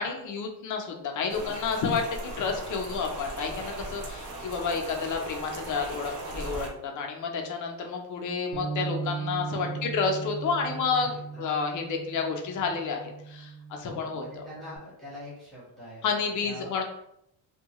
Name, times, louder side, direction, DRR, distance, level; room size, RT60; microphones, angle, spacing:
voice 1, 0.0-11.1 11.4-14.4 16.0-16.8, left 5 dB, 40° left, 2 dB, 0.5 m, -30 dB
Rain, 1.3-6.7, right 2 dB, 40° right, 0.6 m, -38 dB
voice 2, 1.4-1.8 2.5-3.0 9.5-9.9 10.3-11.4 13.8-16.8, equal, ahead, -9 dB, 1.0 m, -45 dB
Bass guitar, 8.5-14.8, right 5 dB, 80° right, 0.7 m, -38 dB
2.7 x 2.2 x 2.9 m, 0.77 s
cardioid pair, 145°, 46 cm